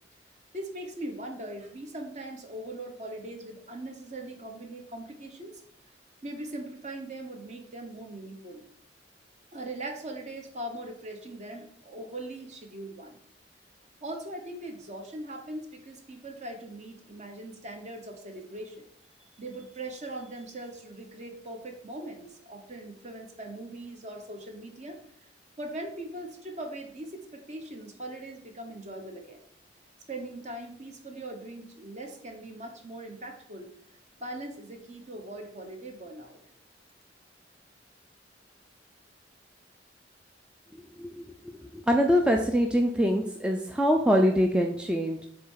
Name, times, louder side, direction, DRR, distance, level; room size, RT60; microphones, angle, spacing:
voice 1, 0.5-5.6 6.2-8.7 9.5-13.2 14.0-18.9 19.4-25.0 25.6-29.4 30.1-33.8 34.2-36.4, right 1 dB, 40° right, 3 dB, 1.1 m, -40 dB
voice 2, 41.6-45.3, equal, 5° right, 2 dB, 0.4 m, -24 dB
7.8 x 3.1 x 5.6 m, 0.65 s
head